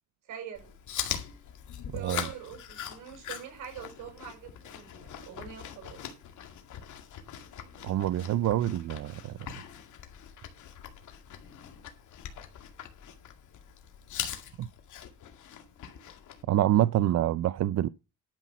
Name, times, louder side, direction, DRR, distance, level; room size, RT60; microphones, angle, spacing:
voice 1, 0.3-0.7 1.9-6.0 7.3-7.9, right 8 dB, 80° right, 6.2 m, -44 dB
Chewing mastication, 0.5-16.4, left 9 dB, 75° left, 2.2 m, -42 dB
voice 2, 1.9-2.3 7.8-9.4 14.6-14.7 16.5-17.9, right 13 dB, 60° right, 0.5 m, -26 dB
11.5 x 5.7 x 5.9 m
cardioid pair, 90°, 30 cm